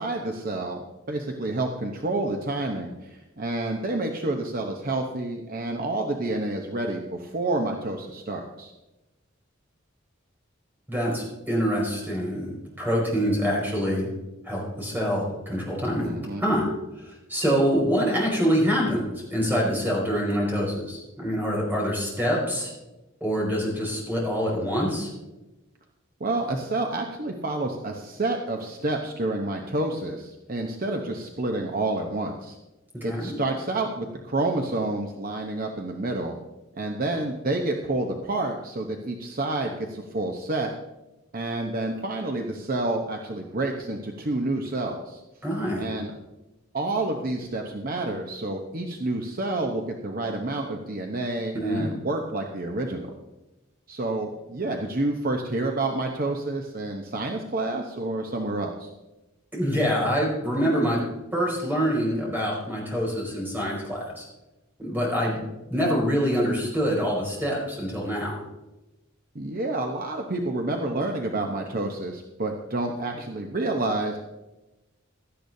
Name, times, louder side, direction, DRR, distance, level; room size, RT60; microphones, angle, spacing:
voice 1, 0.0-8.7 16.0-16.4 26.2-32.6 33.0-36.4 36.8-40.7 41.3-45.2 45.8-46.1 46.7-53.1 53.9-58.9 69.3-74.2, right 2 dB, 45° right, 2 dB, 0.9 m, -29 dB
voice 2, 10.9-14.1 14.4-16.1 16.4-16.7 17.0-19.0 19.3-22.7 23.2-25.1 33.0-33.3 45.4-45.8 51.5-51.9 59.5-61.0 61.3-64.2 64.8-65.4 65.7-68.3, equal, 10° right, -3 dB, 5.3 m, -25 dB
17.0 x 12.0 x 2.7 m, 1.0 s
head